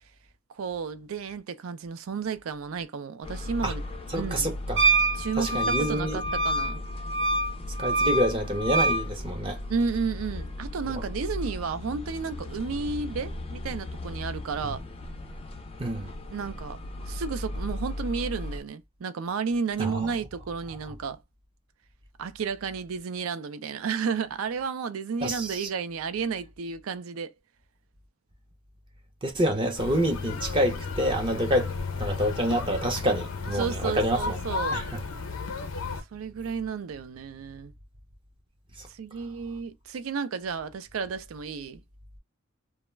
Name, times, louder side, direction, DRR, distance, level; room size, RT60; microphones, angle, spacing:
voice 1, 0.6-3.8 4.1-4.5 5.1-6.8 9.7-14.8 16.3-16.8 17.1-21.2 22.2-27.3 33.6-34.8 36.1-37.7 38.9-41.8, right 5 dB, 80° right, 0.4 m, -32 dB
sound 1, 3.2-18.6, left 1 dB, 25° left, 0.4 m, -37 dB
voice 2, 4.1-4.9 5.4-6.2 7.8-9.6 10.9-11.0 14.6-14.7 15.8-16.1 19.8-20.2 25.2-25.7 29.2-31.7 32.0-34.4 34.7-35.0, equal, 25° right, 0.5 m, -27 dB
Wind instrument woodwind instrument, 4.8-9.0, right 2 dB, 60° right, 0.8 m, -26 dB
sound 2, 29.8-36.0, left 4 dB, 85° left, 0.6 m, -33 dB
2.3 x 2.0 x 3.1 m
head